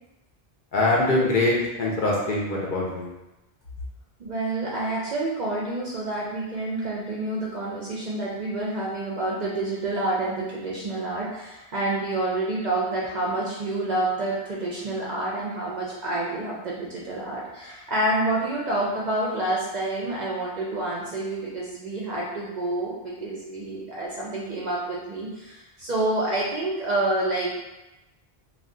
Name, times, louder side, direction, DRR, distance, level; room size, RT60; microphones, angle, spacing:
voice 1, 0.7-3.1, left 2 dB, 55° left, -4 dB, 0.7 m, -23 dB
voice 2, 4.2-27.5, right 2 dB, 55° right, -5 dB, 0.5 m, -28 dB
2.4 x 2.2 x 3.6 m, 0.99 s
omnidirectional pair, 1.1 m